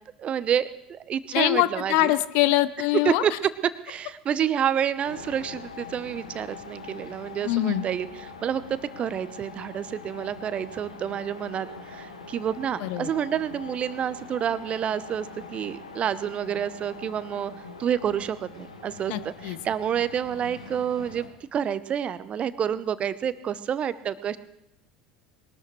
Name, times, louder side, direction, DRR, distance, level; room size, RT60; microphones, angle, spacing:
voice 1, 0.2-2.1 3.0-3.3 3.8-15.3 15.5-17.5 17.8-24.4, right 9 dB, 35° right, 14 dB, 1.0 m, -29 dB
voice 2, 1.3-3.2 7.4-7.8 12.8-13.1 19.1-19.6, left 15 dB, 55° left, 16 dB, 0.8 m, -23 dB
sound 1, 5.0-21.3, left 4 dB, 80° left, 1.8 m, -43 dB
22.0 x 19.5 x 3.3 m, 0.86 s
figure-of-eight pair, 70°, 4 cm